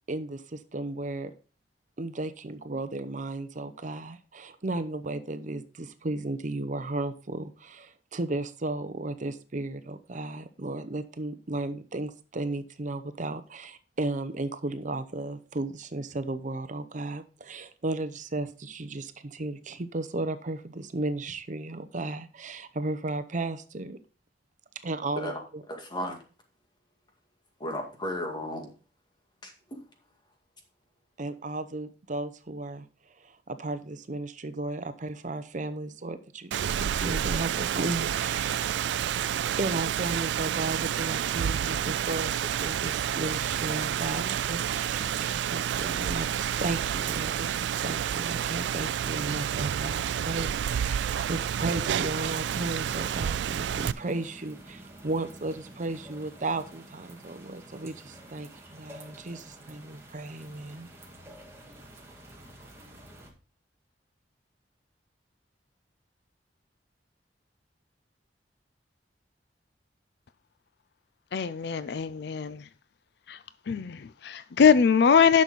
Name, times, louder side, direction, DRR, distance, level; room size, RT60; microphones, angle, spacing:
voice 1, 0.1-1.3 2.0-24.0 24.8-25.6 31.2-32.9 33.2-38.8 39.6-60.9, right 2 dB, 45° right, 0.7 m, -34 dB
voice 2, 25.7-26.2 27.6-28.7 29.4-29.8, left 1 dB, 25° left, 2.1 m, -34 dB
Rain, 36.5-53.9, right 9 dB, 80° right, 0.3 m, -29 dB
sound 1, 51.5-63.3, right 1 dB, 15° right, 2.0 m, -49 dB
voice 3, 71.3-72.7 73.3-73.4 73.7-75.4, left 6 dB, 65° left, 0.4 m, -22 dB
10.5 x 6.4 x 4.0 m
head